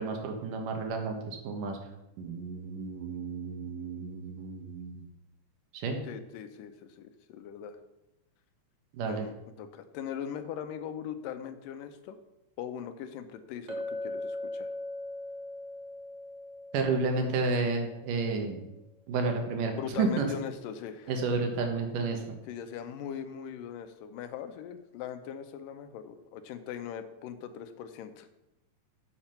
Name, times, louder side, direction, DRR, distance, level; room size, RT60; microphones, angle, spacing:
voice 1, 0.0-1.8 2.2-5.0 5.7-6.0 8.9-9.3 16.7-18.6 19.1-20.3 21.1-22.4, right 4 dB, 75° right, 4 dB, 2.9 m, -31 dB
voice 2, 6.0-7.8 9.1-12.2 12.6-14.7 19.7-21.1 22.5-28.3, left 8 dB, 85° left, 8 dB, 2.3 m, -40 dB
Chink clink, 13.7-17.8, left 2 dB, 45° right, 0.9 m, -39 dB
7.6 x 7.3 x 5.7 m, 0.93 s
omnidirectional pair, 3.9 m